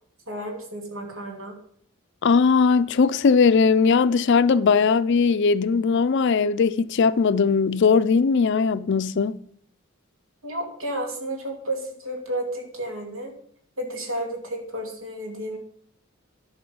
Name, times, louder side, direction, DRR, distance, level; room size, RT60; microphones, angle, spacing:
voice 1, 0.3-1.5 10.4-13.3 13.8-15.6, right 1 dB, 85° right, 2.7 m, -32 dB
voice 2, 2.2-9.4, left 5 dB, 60° left, 0.4 m, -19 dB
11.5 x 7.8 x 5.3 m
head